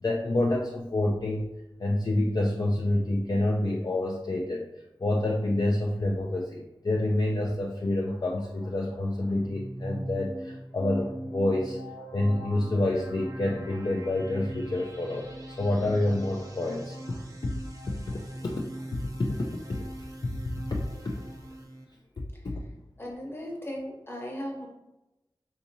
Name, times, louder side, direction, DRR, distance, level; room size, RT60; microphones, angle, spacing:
voice 1, 0.0-1.5 1.8-11.8 12.1-17.5 17.9-18.7 18.9-19.8 20.2-20.3 20.7-21.2 22.4-22.7, left 1 dB, 50° left, -1 dB, 0.4 m, -28 dB
sound 1, 9.3-21.9, right 1 dB, 40° right, 0.5 m, -41 dB
voice 2, 23.0-24.7, equal, 25° left, -2 dB, 0.9 m, -37 dB
3.6 x 2.7 x 2.6 m, 0.97 s
wide cardioid pair, 65°, 9 cm